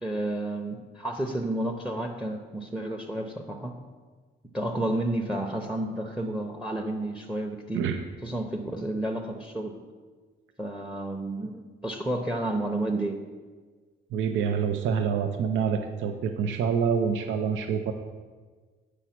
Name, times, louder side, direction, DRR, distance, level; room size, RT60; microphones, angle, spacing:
voice 1, 0.0-3.8 4.5-7.9 8.2-9.7 10.6-13.1, right 1 dB, 5° right, 4 dB, 0.8 m, -31 dB
voice 2, 14.1-17.9, right 7 dB, 75° right, 5 dB, 0.6 m, -26 dB
8.1 x 4.9 x 5.9 m, 1.4 s
cardioid pair, 90°, 20 cm